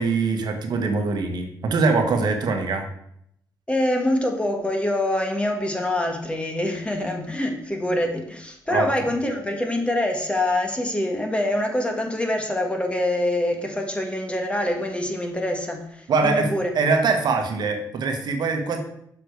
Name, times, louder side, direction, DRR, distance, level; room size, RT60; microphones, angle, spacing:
voice 1, 0.0-2.9 8.7-8.9 16.1-16.5 16.7-18.8, right 4 dB, 65° right, 5 dB, 1.3 m, -22 dB
voice 2, 3.7-16.7, left 1 dB, 15° left, 3 dB, 1.5 m, -25 dB
6.7 x 6.0 x 4.6 m, 0.72 s
cardioid pair, 85°, 8 cm